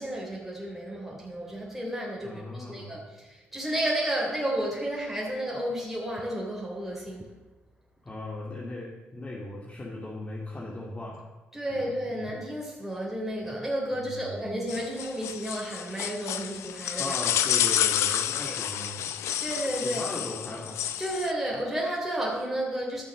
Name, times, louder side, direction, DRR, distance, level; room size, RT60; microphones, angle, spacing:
voice 1, 0.0-7.3 11.5-17.2 18.3-18.5 19.4-20.0 21.0-23.0, right 1 dB, 5° right, -3 dB, 3.3 m, -32 dB
voice 2, 2.2-3.0 8.0-11.2 11.7-12.3 13.9-14.5 17.0-19.1 19.8-20.8, left 2 dB, 25° left, -4 dB, 2.3 m, -38 dB
sound 1, 14.7-21.3, left 10 dB, 80° left, 0.6 m, -29 dB
11.5 x 6.6 x 6.4 m, 1.1 s
supercardioid pair, 65°, 5 cm